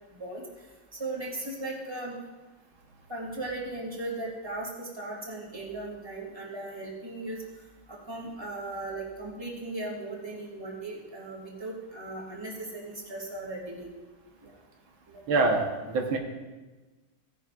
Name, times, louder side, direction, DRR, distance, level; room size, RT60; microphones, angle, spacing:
voice 1, 0.9-2.1 3.1-7.4 7.9-13.9 14.4-14.5 15.1-15.5, right 2 dB, 15° right, -3 dB, 2.5 m, -37 dB
voice 2, 15.3-16.2, right 3 dB, 90° right, 2 dB, 2.0 m, -25 dB
17.0 x 11.0 x 2.5 m, 1.2 s
omnidirectional pair, 2.2 m